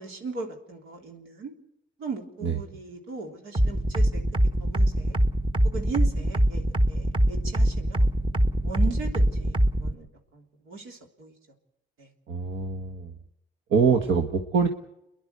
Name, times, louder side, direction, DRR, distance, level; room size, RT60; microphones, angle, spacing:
voice 1, 0.0-1.5 2.0-4.2 4.6-5.2 5.7-8.1 8.6-10.1 10.3-11.3 12.0-12.1, right 4 dB, 90° right, 2 dB, 3.5 m, -38 dB
sound 1, 3.5-9.9, right 1 dB, 25° right, 1.4 m, -22 dB
voice 2, 12.3-13.1 13.7-14.7, right 5 dB, 70° right, 3 dB, 1.5 m, -24 dB
29.5 x 11.0 x 8.3 m, 0.87 s
cardioid pair, 90°, 20 cm